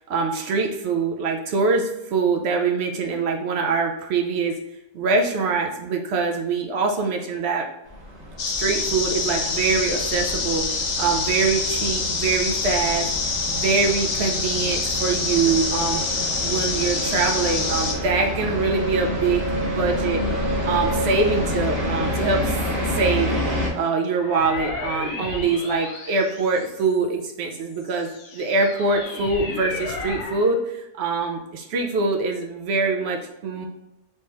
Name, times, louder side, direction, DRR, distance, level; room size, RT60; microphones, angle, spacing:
voice 1, 0.1-4.6 4.9-7.7 8.6-10.7 11.0-13.1 13.5-16.0 16.4-20.2 20.6-22.5 22.9-23.3 23.7-33.7, right 4 dB, 65° right, 2 dB, 0.6 m, -24 dB
sound 1, 7.9-23.7, equal, 45° right, 1.1 m, -28 dB
sound 2, 8.4-17.9, left 4 dB, 85° left, 0.4 m, -26 dB
sound 3, 24.1-27.1 27.7-30.5, left 3 dB, 70° left, 1.1 m, -34 dB
3.4 x 3.1 x 2.9 m, 0.92 s
omnidirectional pair, 1.5 m